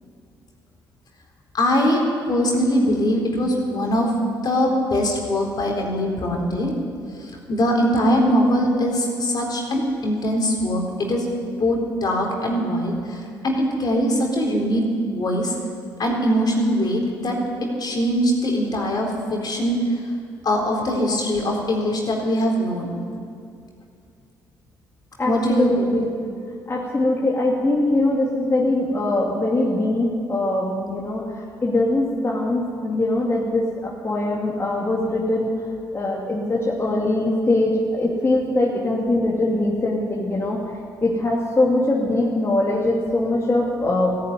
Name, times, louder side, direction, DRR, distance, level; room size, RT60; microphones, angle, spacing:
voice 1, 1.5-2.0 2.3-4.2 4.4-6.7 7.2-11.3 11.6-15.5 16.0-19.9 20.4-22.9 25.2-25.9, equal, 50° left, 0 dB, 4.0 m, -22 dB
voice 2, 25.2-26.1 26.7-35.5 35.9-40.6 41.0-44.2, left 2 dB, 30° left, -3 dB, 2.7 m, -22 dB
15.0 x 10.5 x 9.3 m, 2.4 s
hypercardioid pair, 50°, 9 cm